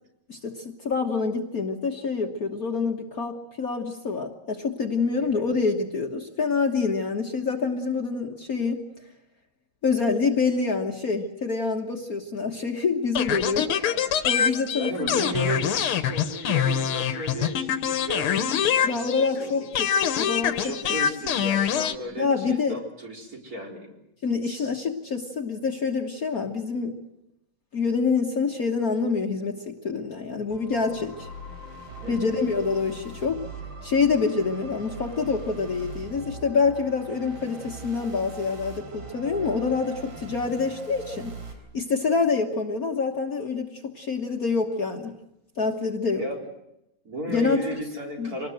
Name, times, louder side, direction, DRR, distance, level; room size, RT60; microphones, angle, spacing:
voice 1, 0.3-8.8 9.8-13.7 14.2-15.2 18.8-20.7 22.2-22.8 24.2-27.0 27.7-31.3 32.1-33.4 33.8-41.4 41.7-45.2 45.6-46.2 47.3-47.6 48.2-48.3, left 4 dB, 45° left, 2 dB, 1.6 m, -26 dB
sound 1, 13.2-19.4 19.8-22.0, left 8 dB, 80° left, 1.9 m, -25 dB
voice 2, 13.7-14.2 14.7-19.7 20.6-24.0 24.4-24.7 32.0-32.4 46.2-46.4 47.0-48.5, right 1 dB, 40° right, -1 dB, 4.7 m, -35 dB
sound 2, 30.5-41.5, right 3 dB, 75° right, 4.8 m, -41 dB
25.5 x 19.5 x 7.9 m, 0.87 s
omnidirectional pair, 2.4 m